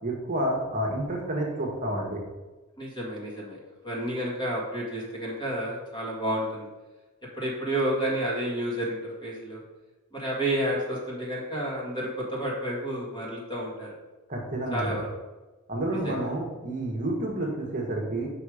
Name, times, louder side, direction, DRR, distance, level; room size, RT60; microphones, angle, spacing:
voice 1, 0.0-2.2 14.3-14.9 15.7-18.3, right 1 dB, 40° right, -1 dB, 1.3 m, -29 dB
voice 2, 2.8-3.6 3.8-6.7 7.4-9.6 10.1-13.9 14.7-15.1 15.9-16.2, right 1 dB, 20° left, -4 dB, 1.9 m, -30 dB
5.5 x 5.5 x 4.9 m, 1.2 s
head